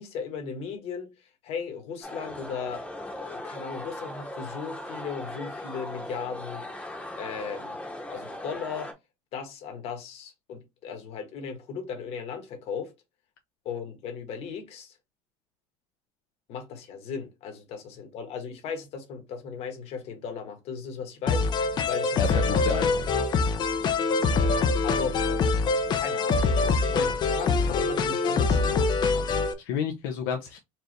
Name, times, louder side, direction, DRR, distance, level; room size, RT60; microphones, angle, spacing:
voice 1, 0.0-6.6 7.2-7.8 8.1-8.9 9.3-12.9 13.6-15.0 16.5-22.6 24.8-25.2 26.0-28.8, left 6 dB, 55° left, 1.3 m, -37 dB
sound 1, 2.0-8.9, left 1 dB, 10° left, 1.0 m, -38 dB
sound 2, 21.3-29.5, left 4 dB, 35° left, 0.6 m, -24 dB
voice 2, 22.2-22.9 29.3-30.6, left 7 dB, 85° left, 0.8 m, -30 dB
4.5 x 2.5 x 3.2 m
cardioid pair, 145°, 12 cm